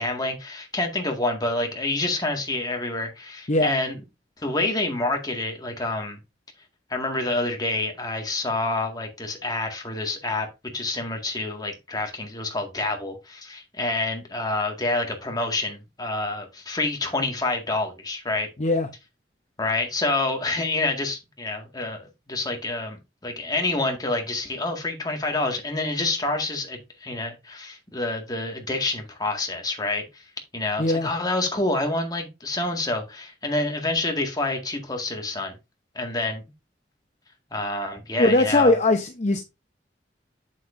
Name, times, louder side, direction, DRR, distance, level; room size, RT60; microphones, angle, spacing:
voice 1, 0.0-4.0 4.4-6.2 6.9-18.5 19.6-22.0 22.3-23.0 23.2-30.2 30.5-35.6 36.0-36.4 37.5-38.8, left 2 dB, 20° left, 1.9 m, -27 dB
voice 2, 30.8-31.1 38.2-39.4, left 2 dB, 40° left, 0.8 m, -20 dB
7.9 x 7.5 x 2.6 m
head